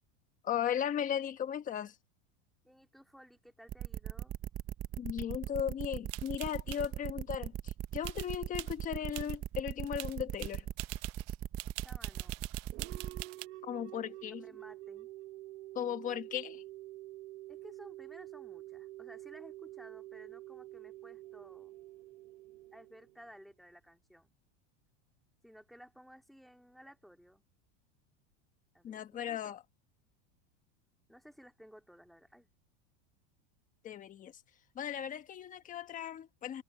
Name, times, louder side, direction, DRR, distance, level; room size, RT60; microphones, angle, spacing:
voice 1, 0.4-2.0 5.0-10.7 13.6-14.4 15.7-16.6 28.8-29.6 33.8-34.4 34.7-36.6, left 9 dB, 20° left, 1.2 m, -37 dB
voice 2, 2.6-4.3 11.8-12.4 12.7-13.3 13.5-13.6 14.4-15.1 17.5-21.8 22.7-24.3 25.4-27.4 28.7-29.4 31.1-32.5, equal, ahead, 2.6 m, -56 dB
sound 1, 3.7-13.2, right 11 dB, 25° right, 0.9 m, -39 dB
sound 2, 6.1-6.9 8.0-8.8 9.1-9.3 9.7-13.5, right 23 dB, 50° right, 0.7 m, -45 dB
sound 3, 12.7-23.4, right 16 dB, 70° right, 1.2 m, -48 dB
supercardioid pair, 160°, 37 cm